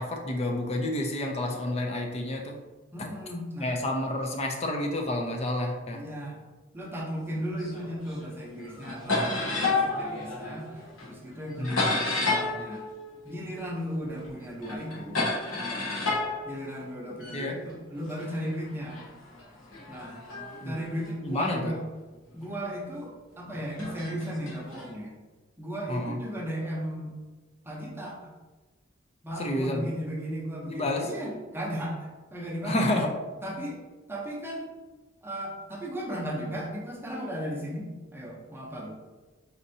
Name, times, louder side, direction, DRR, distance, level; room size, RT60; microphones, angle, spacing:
voice 1, 0.0-2.6 3.0-3.1 3.6-6.0 11.6-12.0 14.8-15.0 17.3-17.6 20.6-20.8 21.2-21.7 25.9-26.2 29.4-29.9 30.7-31.1 32.6-33.1, left 1 dB, 30° left, 2 dB, 0.5 m, -30 dB
voice 2, 2.9-3.8 5.9-6.4 6.7-12.8 13.2-15.2 15.7-15.9 16.4-19.0 19.9-20.2 20.6-21.8 22.3-25.1 25.6-27.1 27.7-28.3 29.2-32.9 33.4-33.8 34.1-34.7 35.2-38.9, equal, 10° right, -3 dB, 0.6 m, -36 dB
sound 1, 7.6-8.3 8.6-13.9 14.2-17.4 18.2-21.7 22.4-22.5 23.5-24.9, left 3 dB, 85° left, 1.0 m, -32 dB
4.2 x 2.7 x 2.6 m, 1.2 s
head